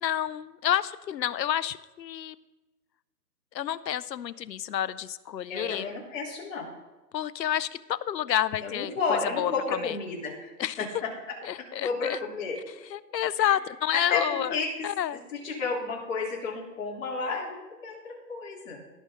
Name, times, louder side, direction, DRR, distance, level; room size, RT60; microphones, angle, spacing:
voice 1, 0.0-2.4 3.5-5.9 7.1-10.0 10.6-10.8 11.4-12.2 12.9-15.2, left 11 dB, 85° left, 18 dB, 0.7 m, -29 dB
voice 2, 5.5-6.7 8.6-11.1 11.8-12.6 13.4-13.6 13.9-18.9, left 4 dB, 50° left, -3 dB, 3.8 m, -32 dB
17.0 x 6.4 x 3.9 m, 1.1 s
hypercardioid pair, 155°, 49 cm